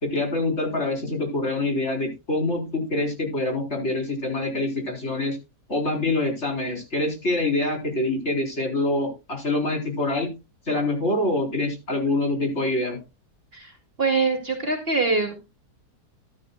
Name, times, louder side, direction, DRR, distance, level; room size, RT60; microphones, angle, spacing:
voice 1, 0.0-5.4 5.7-10.3 10.7-13.0, left 2 dB, 40° left, 2 dB, 4.7 m, -25 dB
voice 2, 14.0-15.4, right 4 dB, 35° right, 4 dB, 2.7 m, -23 dB
14.5 x 13.0 x 2.3 m, 0.27 s
omnidirectional pair, 1.8 m